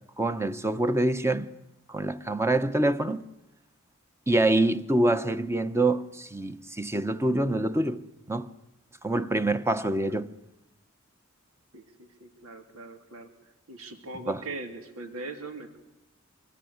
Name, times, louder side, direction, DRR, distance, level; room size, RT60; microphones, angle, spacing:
voice 1, 0.2-1.5 1.9-3.2 4.3-8.0 8.3-8.5 9.0-10.3 14.3-14.4, right 2 dB, 10° right, 1.0 m, -25 dB
voice 2, 11.7-13.3 13.7-15.8, right 2 dB, 90° right, 2.8 m, -40 dB
25.5 x 23.0 x 9.5 m
head